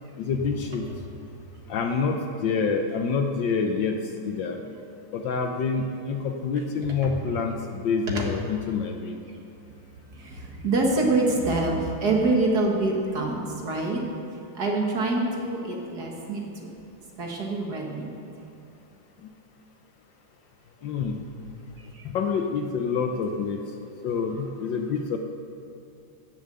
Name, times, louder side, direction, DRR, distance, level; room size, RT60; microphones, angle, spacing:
voice 1, 0.2-0.9 1.7-4.0 4.2-4.6 5.1-9.2 20.8-21.2 22.1-23.6 24.0-25.2, left 5 dB, 65° left, 4 dB, 1.3 m, -27 dB
voice 2, 10.1-14.0 14.5-16.7 17.2-18.1 21.9-22.1, right 2 dB, 50° right, 0 dB, 1.9 m, -25 dB
16.5 x 6.9 x 6.8 m, 2.7 s
omnidirectional pair, 2.4 m